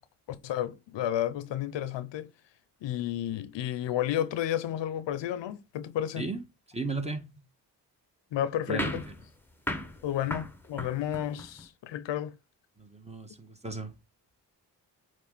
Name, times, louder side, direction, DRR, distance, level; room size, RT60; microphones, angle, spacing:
voice 1, 0.3-2.3 2.8-6.3 8.3-9.0 10.0-12.3, left 11 dB, 85° left, 0.7 m, -32 dB
voice 2, 6.7-7.3 8.7-9.0 12.8-13.9, right 3 dB, 15° right, 1.7 m, -35 dB
sound 1, 8.8-11.7, left 1 dB, 5° left, 1.2 m, -37 dB
8.3 x 3.2 x 4.0 m
cardioid pair, 50°, 42 cm